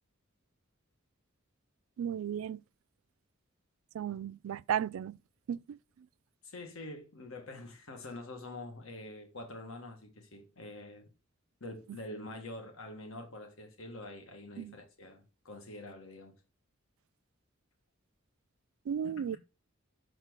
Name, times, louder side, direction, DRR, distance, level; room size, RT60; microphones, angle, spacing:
voice 1, 2.0-2.6 3.9-5.2 5.5-5.8 14.6-14.7 18.9-19.4, right 8 dB, 85° right, 0.3 m, -34 dB
voice 2, 6.4-11.0 11.6-16.3 19.0-19.4, left 2 dB, 85° left, 1.6 m, -46 dB
6.5 x 4.4 x 6.1 m
head